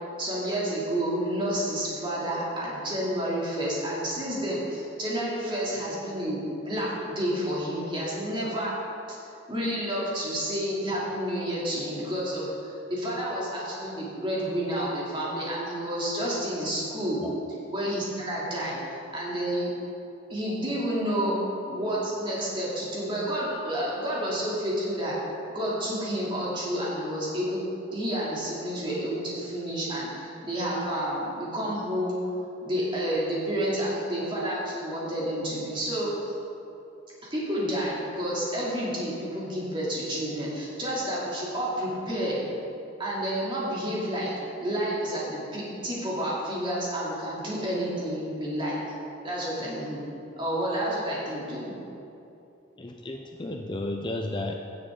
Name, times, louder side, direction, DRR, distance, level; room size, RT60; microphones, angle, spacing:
voice 1, 0.2-8.7 9.5-17.2 17.7-18.8 19.1-19.7 20.3-21.4 21.6-25.2 25.5-27.6 27.9-32.2 32.6-36.1 37.3-42.4 43.0-44.3 44.6-48.8 49.2-50.0 50.4-51.7, equal, 25° right, -7 dB, 2.8 m, -30 dB
voice 2, 52.8-54.5, left 2 dB, 25° left, 2 dB, 0.5 m, -33 dB
16.5 x 7.5 x 3.7 m, 2.8 s
head